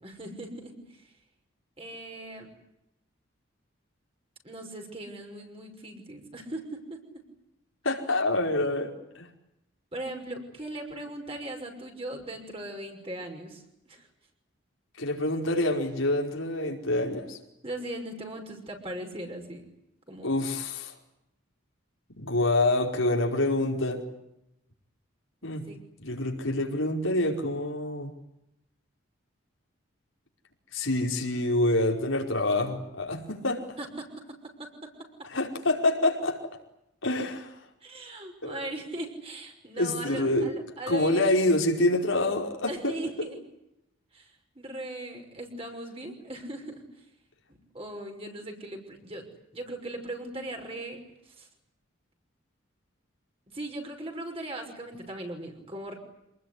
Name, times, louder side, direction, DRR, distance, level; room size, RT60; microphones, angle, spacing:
voice 1, 0.0-1.1 1.8-2.5 4.4-7.2 9.9-14.1 17.6-19.6 20.1-20.3 25.4-25.8 33.8-35.1 37.8-41.3 42.7-43.4 44.1-47.1 47.7-49.3 49.5-51.5 53.5-56.0, right 1 dB, 30° right, 3 dB, 5.9 m, -39 dB
voice 2, 7.8-9.3 15.0-17.4 20.2-20.9 22.2-24.0 25.4-25.6 26.0-28.1 30.7-33.7 35.3-36.4 37.0-37.5 38.4-38.7 39.8-40.5 40.9-42.9, left 2 dB, 80° left, 1 dB, 5.0 m, -26 dB
27.5 x 20.5 x 9.8 m, 0.85 s
head